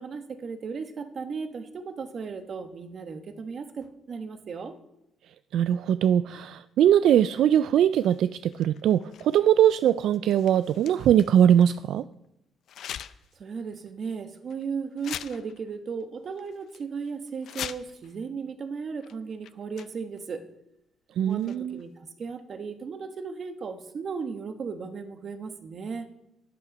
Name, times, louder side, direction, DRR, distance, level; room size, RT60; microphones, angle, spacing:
voice 1, 0.0-4.7 13.4-20.5 21.2-26.1, right 5 dB, 50° right, 9 dB, 1.2 m, -36 dB
voice 2, 5.5-12.0 21.2-21.8, right 10 dB, 75° right, 14 dB, 0.3 m, -21 dB
sound 1, 7.9-11.8 12.7-13.4 13.8-13.9 14.5-14.6 15.0-15.7 16.0-16.1 16.4-16.8 17.3-18.1 19.0-19.1 19.4-20.2 21.3-21.8, left 10 dB, 70° left, 0.5 m, -42 dB
12.5 x 9.0 x 5.1 m, 0.86 s
cardioid pair, 90°, 0 cm